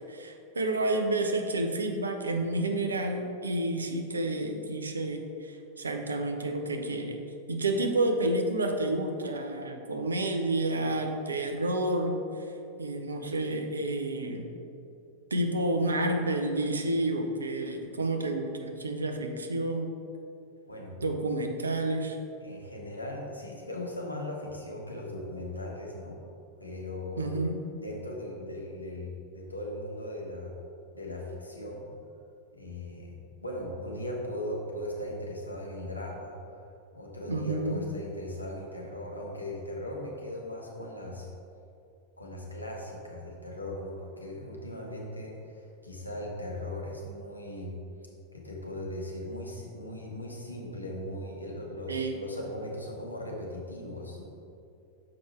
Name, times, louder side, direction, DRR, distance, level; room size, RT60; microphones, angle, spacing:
voice 1, 0.1-7.2 7.5-12.2 12.8-14.5 15.3-19.9 21.0-22.2 27.2-27.6 37.3-37.9 51.9-52.2, right 2 dB, 75° right, 4 dB, 0.6 m, -30 dB
voice 2, 22.4-26.2 26.6-27.3 27.8-30.5 30.9-31.9 32.6-41.3 42.2-47.7 48.3-54.2, left 1 dB, 85° left, -2 dB, 1.1 m, -38 dB
6.3 x 4.9 x 4.3 m, 2.6 s
figure-of-eight pair, 90°, 0 cm